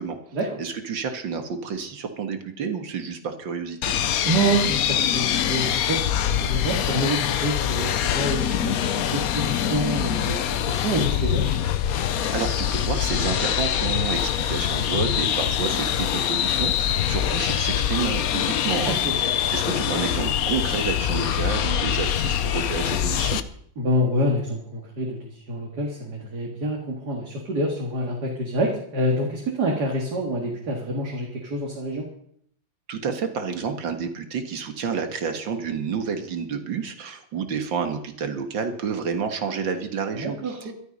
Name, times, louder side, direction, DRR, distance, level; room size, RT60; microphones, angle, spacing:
voice 1, 0.6-3.8 12.3-23.4 32.9-40.7, right 6 dB, 75° right, 6 dB, 2.3 m, -30 dB
sound 1, 3.8-23.4, left 10 dB, 60° left, 1.0 m, -24 dB
voice 2, 4.2-6.0 6.4-11.4 18.8-19.2 23.8-32.1 40.1-40.7, right 1 dB, 55° right, -1 dB, 2.6 m, -27 dB
13.0 x 13.0 x 5.5 m, 0.67 s
omnidirectional pair, 2.1 m